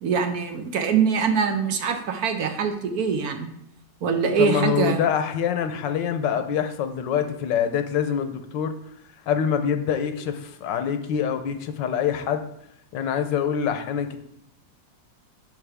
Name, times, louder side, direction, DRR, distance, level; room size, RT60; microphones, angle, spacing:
voice 1, 0.0-3.5 4.0-5.0, right 6 dB, 60° right, 6 dB, 1.1 m, -23 dB
voice 2, 4.4-8.7 9.3-12.5 12.9-14.2, left 8 dB, 75° left, 8 dB, 1.4 m, -25 dB
8.6 x 6.7 x 3.5 m, 0.75 s
omnidirectional pair, 2.0 m